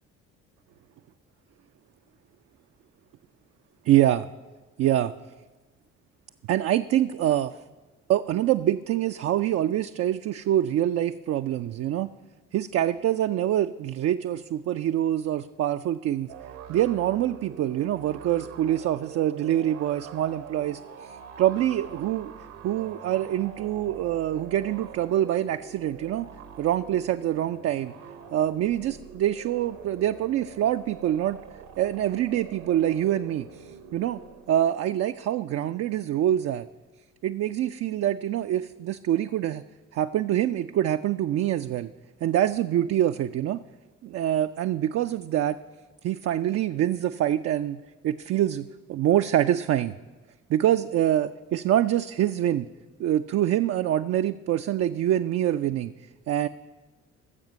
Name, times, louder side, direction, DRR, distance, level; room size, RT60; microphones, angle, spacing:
voice 1, 3.8-4.3 4.8-5.1 6.5-7.5 8.1-12.1 12.5-16.3 16.7-22.3 22.6-26.3 26.6-27.9 28.3-31.4 31.8-34.2 34.5-36.7 37.2-39.6 39.9-41.9 42.2-43.6 44.0-45.6 46.0-49.9 50.5-52.7 53.0-55.9 56.3-56.5, right 12 dB, 40° right, 8 dB, 0.4 m, -25 dB
sound 1, 16.3-34.7, right 8 dB, 75° right, 1.1 m, -44 dB
15.0 x 7.2 x 5.4 m, 1.2 s
figure-of-eight pair, 45°, 37 cm